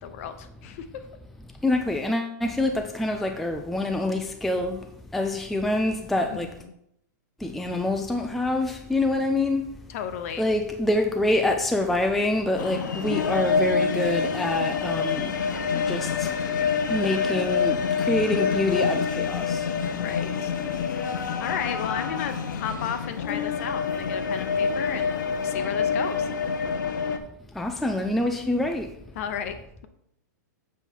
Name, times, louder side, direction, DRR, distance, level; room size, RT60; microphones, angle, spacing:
voice 1, 0.0-1.1 6.3-6.7 9.9-10.5 19.9-20.5 20.9-21.1 21.4-26.3 29.1-29.5, left 8 dB, 50° left, 0.9 m, -34 dB
voice 2, 1.6-4.8 5.1-6.5 7.4-9.7 10.4-15.4 15.9-16.3 16.9-19.6 27.6-28.9, left 1 dB, ahead, 0.4 m, -26 dB
sound 1, 12.6-27.2, left 6 dB, 85° left, 0.9 m, -27 dB
7.2 x 5.4 x 4.5 m
hypercardioid pair, 155°, 10 cm